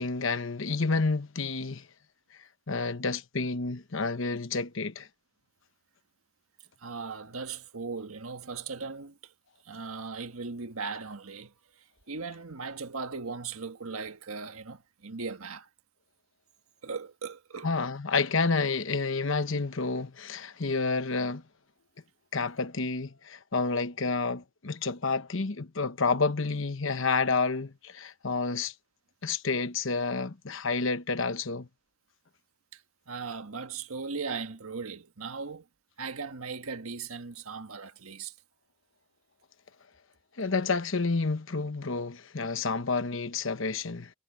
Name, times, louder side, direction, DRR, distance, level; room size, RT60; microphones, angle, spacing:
voice 1, 0.0-1.9 2.7-5.1 17.6-21.4 22.3-28.7 29.2-31.7 40.4-44.1, left 4 dB, 60° left, 1.0 m, -29 dB
voice 2, 6.8-9.3 9.6-15.7 16.8-17.7 32.7-35.7 36.0-38.4, right 4 dB, 85° right, 1.6 m, -38 dB
head